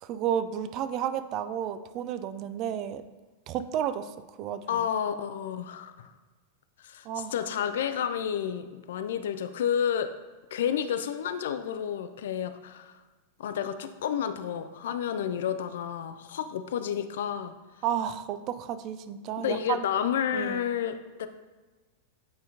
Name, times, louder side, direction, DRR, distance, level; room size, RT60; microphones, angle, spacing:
voice 1, 0.0-3.0 3.5-4.8 7.0-7.3 17.8-19.8 20.3-20.6, right 9 dB, 40° right, 11 dB, 0.4 m, -32 dB
voice 2, 4.7-6.1 6.8-10.1 10.5-13.0 13.4-17.6 19.4-21.3, left 8 dB, 60° left, 10 dB, 0.4 m, -30 dB
8.8 x 4.9 x 2.7 m, 1.3 s
figure-of-eight pair, 90°, 0 cm